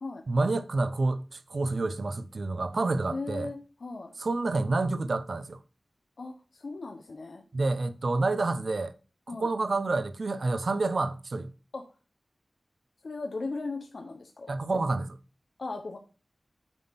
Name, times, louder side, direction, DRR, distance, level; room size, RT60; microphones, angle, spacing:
voice 1, 0.3-3.5 4.2-5.6 7.5-8.9 9.3-11.5 14.5-15.2, right 3 dB, 65° right, 0.7 m, -28 dB
voice 2, 3.1-4.2 6.2-7.4 9.3-9.5 11.7-11.8 13.0-14.6 15.6-16.0, left 3 dB, 75° left, 0.9 m, -37 dB
9.1 x 3.6 x 5.7 m
wide cardioid pair, 90°, 0 cm